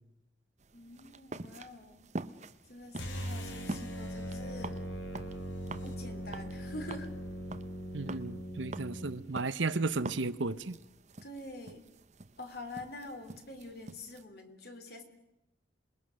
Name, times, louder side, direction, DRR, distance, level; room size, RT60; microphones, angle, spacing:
sound 1, 0.6-14.2, right 2 dB, 35° right, 0.8 m, -46 dB
voice 1, 0.7-2.0 2.7-4.8 5.8-7.1 11.2-11.8 12.4-15.0, left 2 dB, 55° left, 6 dB, 3.1 m, -46 dB
sound 2, 2.9-9.2, equal, 85° left, 3.0 m, -40 dB
voice 2, 7.9-10.8, right 3 dB, 80° right, 13 dB, 1.0 m, -34 dB
27.0 x 21.5 x 6.4 m, 0.91 s
head